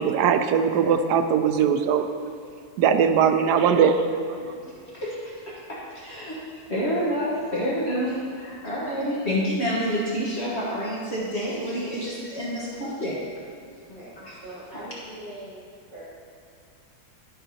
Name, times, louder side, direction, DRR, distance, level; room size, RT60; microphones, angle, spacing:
voice 1, 0.0-2.0 2.8-4.4, right 7 dB, 90° right, 7 dB, 1.1 m, -20 dB
voice 2, 5.7-6.4 6.7-13.1 14.2-14.3, equal, 45° left, -7 dB, 1.4 m, -28 dB
voice 3, 13.9-16.0, right 1 dB, 25° left, -13 dB, 2.0 m, -42 dB
12.0 x 5.7 x 2.7 m, 2.3 s
omnidirectional pair, 1.7 m